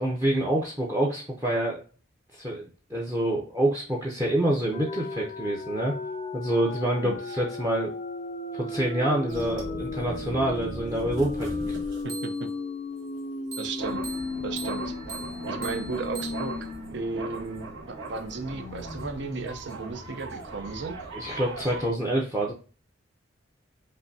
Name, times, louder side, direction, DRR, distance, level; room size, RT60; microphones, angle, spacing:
voice 1, 0.0-1.8 2.3-5.9 6.3-7.9 8.5-11.7 21.1-22.5, right 1 dB, 15° right, 0 dB, 0.6 m, -27 dB
sound 1, 4.7-17.2 17.5-17.6 18.0-20.7, left 3 dB, 35° left, 0.5 m, -36 dB
sound 2, 9.3-12.6 13.5-21.9, right 2 dB, 90° right, 1.4 m, -38 dB
voice 2, 13.6-14.0 14.4-14.9 15.5-16.6 16.9-21.0, right 4 dB, 65° right, 7 dB, 0.6 m, -34 dB
5.4 x 2.7 x 2.6 m, 0.37 s
head